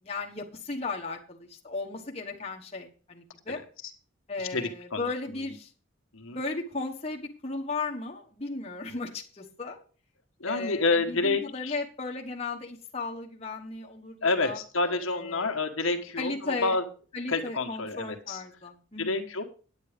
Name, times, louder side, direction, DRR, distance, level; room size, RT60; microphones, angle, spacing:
voice 1, 0.0-3.6 4.3-5.7 6.3-9.8 10.4-14.6 14.8-15.6 16.2-16.8 17.1-19.3, left 3 dB, 30° left, 0 dB, 1.2 m, -36 dB
voice 2, 4.5-5.5 6.1-6.4 10.4-11.7 14.2-16.8 17.3-18.4 19.0-19.4, left 3 dB, 80° left, 5 dB, 1.4 m, -29 dB
9.4 x 9.0 x 5.1 m, 0.39 s
head